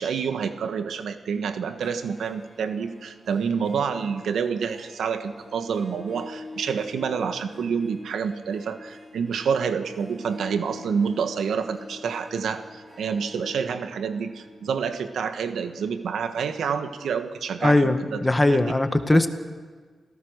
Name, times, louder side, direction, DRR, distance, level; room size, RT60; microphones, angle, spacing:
voice 1, 0.0-18.2 18.5-18.6 19.1-19.3, right 6 dB, 80° right, 8 dB, 1.5 m, -28 dB
Harp, 1.6-17.0, left 2 dB, 15° right, 5.9 m, -46 dB
voice 2, 17.6-19.3, left 2 dB, 20° left, 8 dB, 1.8 m, -20 dB
27.5 x 16.5 x 6.7 m, 1.5 s
cardioid pair, 60°, 0 cm